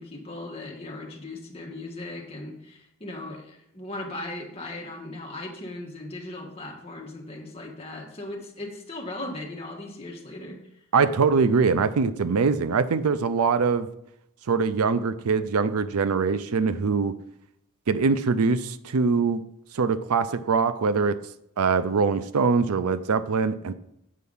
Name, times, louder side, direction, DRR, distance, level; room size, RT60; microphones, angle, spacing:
voice 1, 0.0-10.6, left 2 dB, 25° left, 0 dB, 1.4 m, -38 dB
voice 2, 10.9-13.9 14.5-17.1 17.9-19.4 19.7-21.2 21.6-23.7, right 5 dB, 90° right, 13 dB, 0.5 m, -23 dB
8.4 x 4.7 x 5.5 m, 0.78 s
head